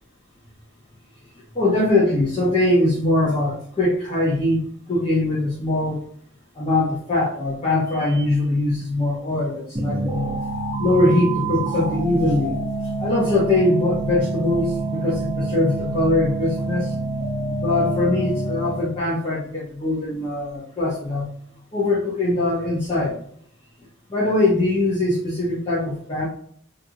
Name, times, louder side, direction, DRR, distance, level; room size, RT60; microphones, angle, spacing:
voice 1, 1.5-4.6 4.9-6.0 6.6-10.3 10.8-12.6 13.0-16.9 17.6-21.3 21.7-23.2 24.1-26.3, left 2 dB, 25° left, -6 dB, 0.8 m, -22 dB
sound 1, 9.7-19.0, right 2 dB, 20° right, 0.6 m, -27 dB
3.3 x 2.6 x 2.8 m, 0.63 s
head